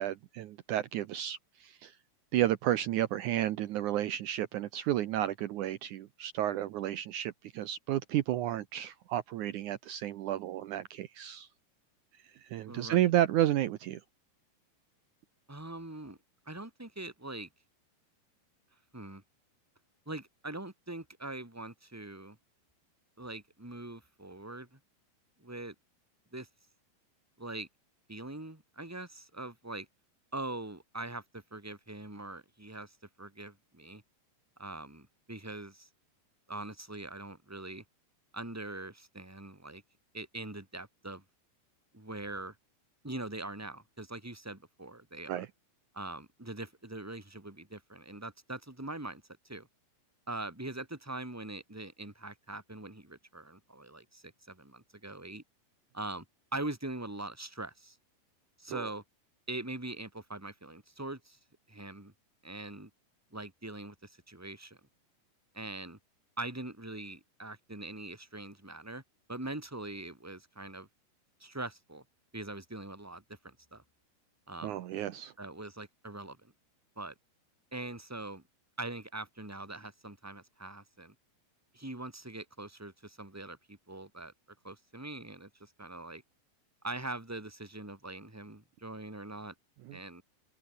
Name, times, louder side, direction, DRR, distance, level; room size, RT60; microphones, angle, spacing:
voice 1, 0.0-1.9 2.3-11.5 12.4-14.0 45.3-45.5 58.7-58.9 74.6-75.3 89.9-90.0, right 13 dB, 85° right, 1.7 m, -32 dB
voice 2, 12.7-13.0 15.5-16.2 16.4-17.5 18.9-19.2 20.0-22.4 23.2-24.8 25.4-25.7 26.3-26.5 27.4-27.7 28.1-29.9 30.3-34.0 34.6-35.9 36.5-37.8 38.3-39.8 40.1-41.2 41.9-42.6 43.0-45.5 45.9-49.7 50.3-55.4 55.9-56.2 56.5-58.0 58.6-59.0 59.5-61.4 61.7-62.1 62.4-62.9 63.3-64.8 65.5-66.0 66.4-69.0 69.3-70.9 71.4-72.0 72.3-73.8 74.5-74.8 75.4-76.5 76.9-77.1 77.7-78.4 78.8-81.1 81.7-84.3 84.6-86.2 86.8-89.5 89.9-90.2, right 2 dB, 5° right, 3.2 m, -42 dB
open air
omnidirectional pair, 4.9 m